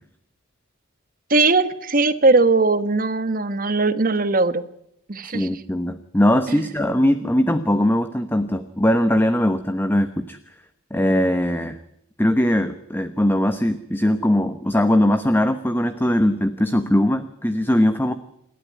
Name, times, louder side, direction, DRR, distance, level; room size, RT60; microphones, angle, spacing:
voice 1, 1.3-4.7 5.1-5.5 6.5-6.6, right 3 dB, 45° right, 12 dB, 1.4 m, -19 dB
voice 2, 5.2-10.4 10.9-11.8 12.2-18.1, left 1 dB, 10° left, 10 dB, 1.0 m, -20 dB
28.0 x 12.5 x 9.5 m, 0.77 s
head